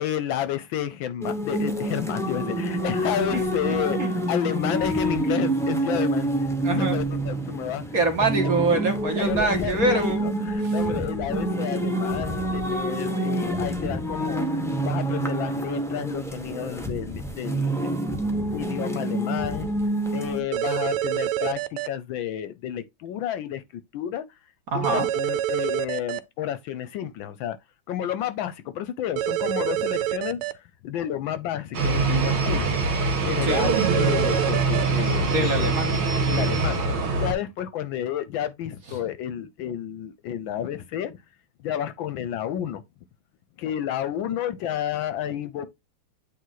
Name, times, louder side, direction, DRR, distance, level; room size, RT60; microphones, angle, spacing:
voice 1, 0.0-6.3 6.7-7.8 9.2-14.4 14.8-17.9 18.5-19.7 20.1-23.6 23.9-24.2 24.7-27.6 27.9-30.4 30.8-32.7 33.2-35.7 36.2-36.8 37.2-41.2 41.6-42.8 43.6-45.7, left 10 dB, 75° left, 1.3 m, -31 dB
sound 1, 1.2-20.4, right 1 dB, 5° left, 0.3 m, -27 dB
voice 2, 6.6-7.0 7.9-10.3 10.6-10.7 11.4-11.5 24.7-25.1 33.4-33.6 35.2-35.9, right 2 dB, 45° right, 1.5 m, -24 dB
sound 2, 20.5-21.9 24.8-26.2 29.2-30.5 33.5-34.8, right 12 dB, 90° right, 1.5 m, -26 dB
sound 3, 31.7-37.3, right 3 dB, 70° right, 2.0 m, -23 dB
8.8 x 3.1 x 3.9 m
omnidirectional pair, 2.4 m